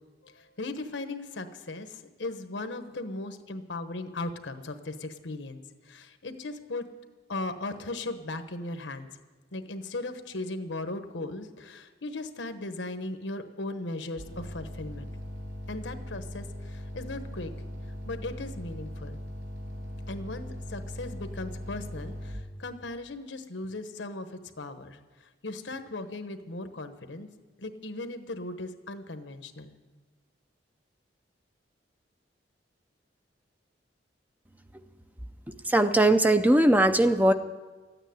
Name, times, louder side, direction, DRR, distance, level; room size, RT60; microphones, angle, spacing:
voice 1, 0.2-6.8 7.3-9.1 9.5-15.1 15.7-17.5 18.0-19.2 20.1-25.0 25.4-27.3 27.6-29.8, left 2 dB, 80° left, 9 dB, 1.1 m, -37 dB
sound 1, 14.2-22.4, equal, 90° right, 6.5 m, -39 dB
voice 2, 35.7-37.3, right 1 dB, 10° right, 9 dB, 0.5 m, -20 dB
13.5 x 9.2 x 9.4 m, 1.3 s
head